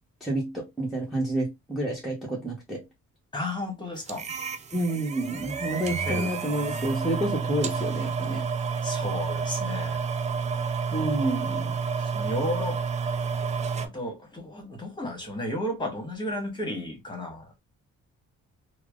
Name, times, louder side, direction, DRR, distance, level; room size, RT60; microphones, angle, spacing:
voice 1, 0.2-2.8 4.7-8.5 10.9-11.8, right 1 dB, ahead, 1.0 m, -29 dB
voice 2, 3.3-4.2 6.0-6.3 8.8-10.1 12.0-12.8 13.8-17.5, left 1 dB, 15° left, 1.3 m, -33 dB
sound 1, 4.1-13.9, right 5 dB, 25° right, 0.3 m, -30 dB
3.1 x 2.0 x 2.3 m
cardioid pair, 90°, 30 cm